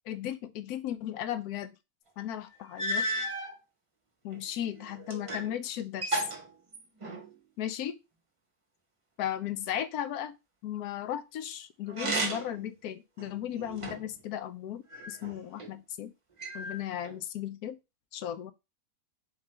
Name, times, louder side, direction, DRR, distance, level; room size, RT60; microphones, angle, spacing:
voice 1, 0.1-1.7 2.2-3.1 4.2-6.2 7.6-8.0 9.2-10.3 10.6-16.1 16.5-17.8 18.1-18.5, left 11 dB, 85° left, 1.1 m, -36 dB
sound 1, 2.2-2.3 2.8-3.5 4.3-5.5 5.8-7.3 11.9-12.6 13.2-14.2 14.9-15.7 16.4-17.2, right 1 dB, 25° right, 0.8 m, -34 dB
3.6 x 3.3 x 4.2 m
omnidirectional pair, 1.6 m